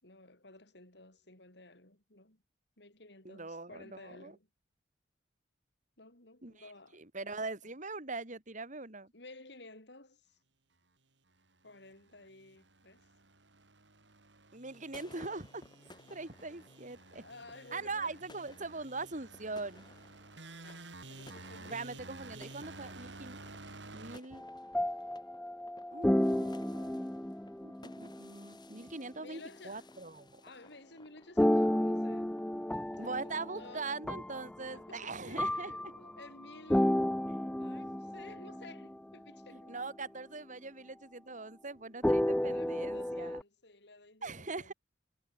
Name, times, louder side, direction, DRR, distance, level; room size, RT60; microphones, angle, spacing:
voice 1, 0.0-2.4 2.8-4.5 6.0-7.3 9.1-10.4 11.6-13.1 17.1-18.2 20.6-22.0 29.2-29.9 30.4-32.4 33.0-33.9 34.7-37.0 37.5-39.8 40.6-40.7 42.4-44.7, left 2 dB, 65° left, 5.7 m, -54 dB
voice 2, 3.2-4.3 6.4-6.5 6.9-9.1 14.5-15.7 16.1-17.2 17.7-19.8 21.6-23.4 23.9-24.4 25.9-27.0 27.6-30.4 33.0-35.7 37.3-37.4 39.5-43.4 44.2-44.7, right 3 dB, 45° right, 3.4 m, -42 dB
sound 1, 11.8-24.2, right 2 dB, 75° right, 6.6 m, -52 dB
sound 2, 14.6-34.1, left 2 dB, 25° left, 5.1 m, -60 dB
sound 3, 24.3-28.5 31.4-35.0 35.4-39.0 39.4-39.7 42.0-43.4, left 1 dB, 5° left, 0.4 m, -32 dB
head